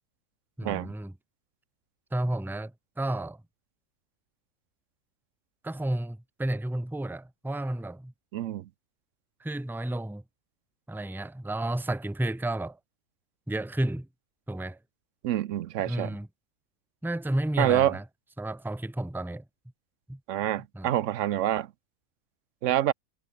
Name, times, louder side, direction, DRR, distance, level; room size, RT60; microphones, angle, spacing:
voice 1, 0.6-1.1 2.1-3.4 5.6-8.1 9.4-10.2 10.9-12.8 13.5-14.1 14.5-14.8 15.8-16.3 17.0-18.0 18.4-19.4 20.1-20.2 20.7-20.9, right 1 dB, ahead, 0.6 m, -31 dB
voice 2, 8.3-8.7 15.2-16.2 17.6-18.0 20.3-21.7 22.6-22.9, right 12 dB, 65° right, 0.9 m, -26 dB
omnidirectional pair, 1.5 m